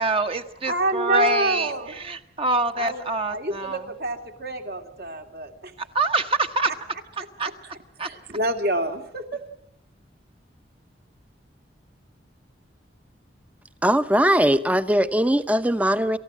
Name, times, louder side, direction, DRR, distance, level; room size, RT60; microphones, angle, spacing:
voice 1, 0.0-3.8 5.9-6.7 7.2-7.5 8.0-8.1, right 3 dB, 30° right, 1.2 m, -25 dB
voice 2, 0.6-1.9 2.7-5.7 6.7-6.8 7.4-7.5 8.0-9.4, right 1 dB, 60° right, 2.9 m, -27 dB
voice 3, 13.8-16.2, equal, 10° right, 0.8 m, -20 dB
28.0 x 14.5 x 7.7 m
head